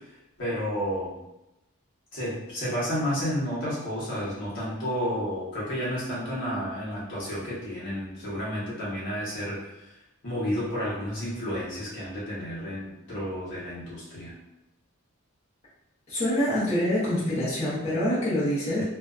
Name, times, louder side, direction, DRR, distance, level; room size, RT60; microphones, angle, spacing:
voice 1, 0.4-1.1 2.1-9.6 10.2-14.3 18.8-18.9, equal, 60° left, -8 dB, 1.1 m, -31 dB
voice 2, 16.1-18.8, left 1 dB, 30° left, -12 dB, 0.9 m, -25 dB
2.6 x 2.2 x 2.4 m, 0.92 s
head